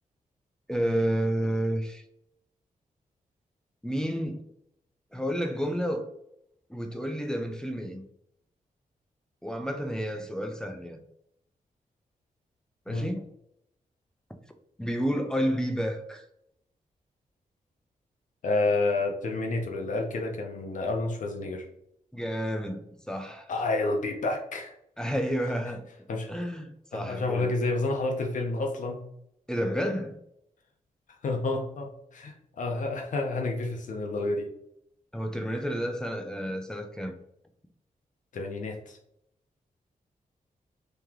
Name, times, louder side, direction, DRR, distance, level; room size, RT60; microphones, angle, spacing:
voice 1, 0.7-2.0 3.8-4.4 5.1-6.1 6.7-8.1 9.4-11.0 12.9-13.3 14.8-16.2 22.1-23.5 25.0-25.8 26.3-27.5 29.5-30.2 35.1-37.1, equal, 5° left, 0.4 m, -30 dB
voice 2, 18.4-21.6 23.5-24.7 26.1-26.3 26.9-29.0 31.2-34.5 38.3-39.0, left 2 dB, 65° left, 0.6 m, -29 dB
3.1 x 2.9 x 3.6 m
wide cardioid pair, 150°, 14 cm